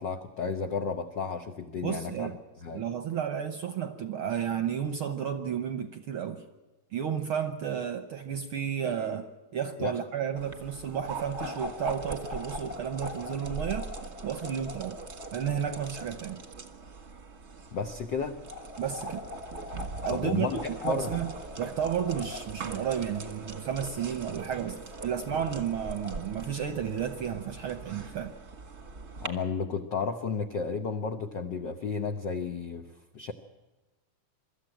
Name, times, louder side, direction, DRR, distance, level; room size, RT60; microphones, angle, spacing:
voice 1, 0.0-2.3 2.6-2.8 9.8-10.0 17.7-18.4 20.1-21.1 29.2-32.9 33.1-33.3, left 5 dB, 70° left, 6 dB, 1.0 m, -32 dB
voice 2, 1.8-2.3 2.7-6.4 6.9-13.9 14.2-15.0 15.3-16.4 18.8-19.2 20.0-28.3, right 8 dB, 65° right, 9 dB, 1.4 m, -32 dB
sound 1, 10.4-29.3, right 1 dB, 35° right, 1.1 m, -40 dB
24.5 x 13.5 x 9.0 m, 1.1 s
omnidirectional pair, 3.4 m